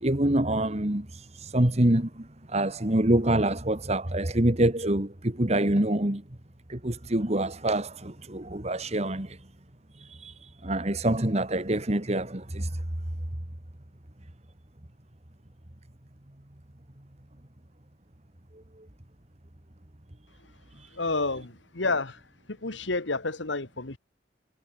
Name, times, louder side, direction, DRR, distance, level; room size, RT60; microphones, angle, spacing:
voice 1, 0.0-6.2 6.7-9.5 9.9-12.8 18.5-18.9 20.7-21.0, right 1 dB, 35° right, 2.0 m, -26 dB
voice 2, 20.9-22.2 22.5-24.0, left 3 dB, 75° left, 2.0 m, -30 dB
head